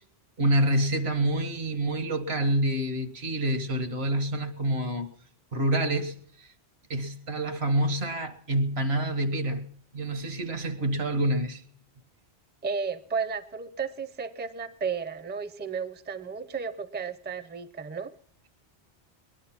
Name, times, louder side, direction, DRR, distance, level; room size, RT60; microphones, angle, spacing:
voice 1, 0.4-5.1 5.5-6.5 6.9-11.6, right 1 dB, 75° right, 1.9 m, -27 dB
voice 2, 12.6-18.1, right 5 dB, 10° right, 0.6 m, -33 dB
20.0 x 11.0 x 5.9 m
omnidirectional pair, 1.1 m